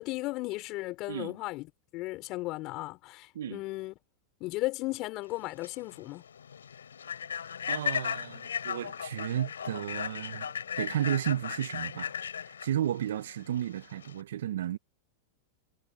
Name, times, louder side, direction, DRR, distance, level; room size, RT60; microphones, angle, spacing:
voice 1, 0.0-3.9 4.4-6.2, left 20 dB, 45° left, 3.9 m, -35 dB
Human voice / Train, 5.3-14.2, left 7 dB, 85° left, 5.3 m, -36 dB
voice 2, 7.7-10.5 10.8-12.1 12.6-14.8, right 11 dB, 75° right, 1.1 m, -33 dB
hypercardioid pair, 105°, 0 cm